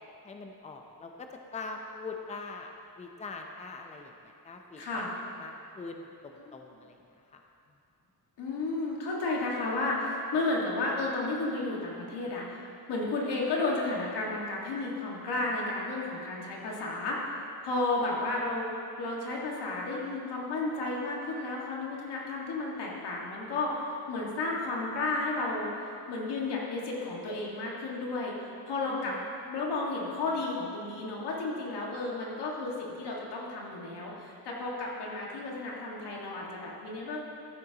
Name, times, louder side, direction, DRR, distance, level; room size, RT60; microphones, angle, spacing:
voice 1, 0.2-2.7 3.0-5.0 5.4-7.0 7.3-7.4 28.9-29.3, left 3 dB, 15° left, 3 dB, 0.6 m, -43 dB
voice 2, 4.8-5.1 6.4-6.6 8.4-12.6 12.9-18.7 19.0-25.7 26.1-28.3 28.7-29.1 29.5-37.3, left 2 dB, 90° left, -3 dB, 1.8 m, -32 dB
14.0 x 8.7 x 2.9 m, 2.6 s
cardioid pair, 120°, 39 cm